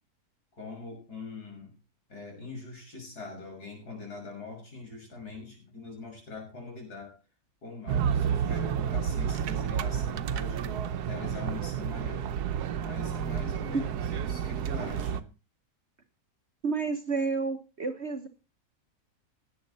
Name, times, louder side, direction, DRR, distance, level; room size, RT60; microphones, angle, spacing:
voice 1, 0.6-1.7 2.1-7.2 7.6-10.8 11.0-12.3 12.8-15.3, left 3 dB, 80° left, 1 dB, 6.6 m, -42 dB
sound 1, 7.9-15.2, right 8 dB, 85° right, 1.3 m, -30 dB
voice 2, 16.6-18.3, right 4 dB, 45° right, 7 dB, 1.4 m, -30 dB
18.0 x 8.7 x 4.2 m, 0.33 s
omnidirectional pair, 1.6 m